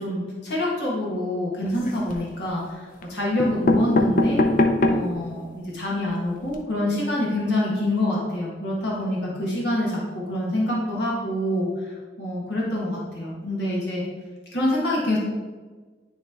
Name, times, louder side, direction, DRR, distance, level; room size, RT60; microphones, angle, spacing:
voice 1, 0.0-4.4 4.8-14.0 14.5-15.2, left 1 dB, 65° left, -5 dB, 1.6 m, -26 dB
sound 1, 1.7-2.3 3.0-3.1 3.4-5.2 5.7-5.8 6.0-6.1 6.4-6.6, left 1 dB, 45° left, 0.5 m, -22 dB
9.7 x 3.3 x 3.6 m, 1.3 s
head